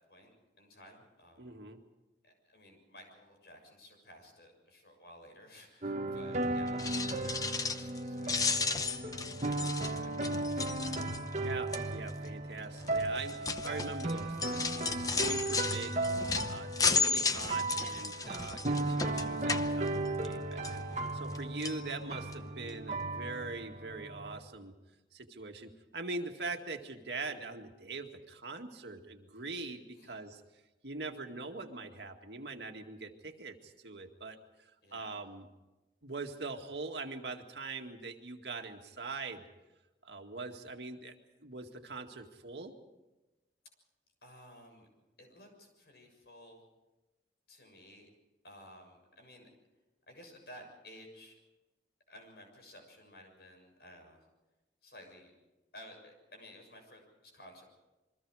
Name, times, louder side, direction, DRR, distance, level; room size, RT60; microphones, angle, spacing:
voice 1, 0.6-1.6 2.2-10.7 29.9-30.2 34.8-35.2 44.2-44.9 45.2-46.6 47.5-48.1 48.4-49.5 50.1-51.4 52.1-54.2 54.8-55.3 55.7-57.6, left 1 dB, 65° left, 3 dB, 6.8 m, -55 dB
voice 2, 1.4-1.8 11.4-16.0 16.5-24.7 25.1-30.4 30.8-35.5 36.0-39.4 40.0-41.2 41.4-42.7, right 3 dB, 80° right, 4 dB, 2.1 m, -42 dB
sound 1, 5.8-24.4, right 2 dB, 40° right, 1.5 m, -36 dB
sound 2, 6.7-11.4 11.7-12.1 12.8-20.3 20.6-21.4 21.6-21.8 22.3-22.4 22.7-22.8, left 4 dB, 20° left, 0.8 m, -34 dB
28.0 x 23.0 x 4.9 m, 1.1 s
head